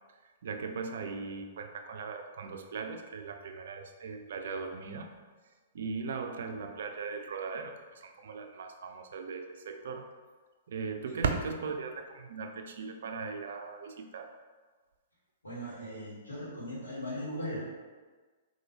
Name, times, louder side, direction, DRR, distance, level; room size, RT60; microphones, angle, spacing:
voice 1, 0.2-5.1 5.7-10.1 10.7-14.4, right 5 dB, 55° right, 5 dB, 0.4 m, -38 dB
voice 2, 15.4-17.6, equal, 75° left, -8 dB, 1.4 m, -38 dB
3.8 x 2.6 x 2.8 m, 1.4 s
figure-of-eight pair, 110°, 0 cm